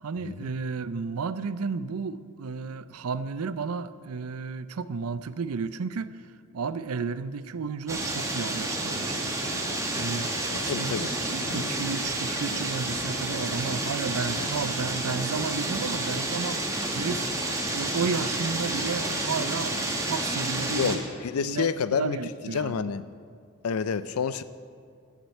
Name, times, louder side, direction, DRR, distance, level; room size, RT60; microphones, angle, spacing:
voice 1, 0.0-6.2 6.5-9.4 9.9-10.3 10.6-10.9 11.2-17.3 17.7-21.0 21.4-21.7 22.0-22.8, right 5 dB, 80° right, 14 dB, 0.5 m, -32 dB
sound 1, 7.9-21.0, right 2 dB, 15° right, 1.5 m, -30 dB
voice 2, 10.5-11.1 11.5-11.7 14.4-14.5 20.7-22.2 22.5-23.0 23.6-24.4, left 6 dB, 75° left, 14 dB, 0.4 m, -29 dB
12.5 x 7.4 x 8.2 m, 2.1 s
head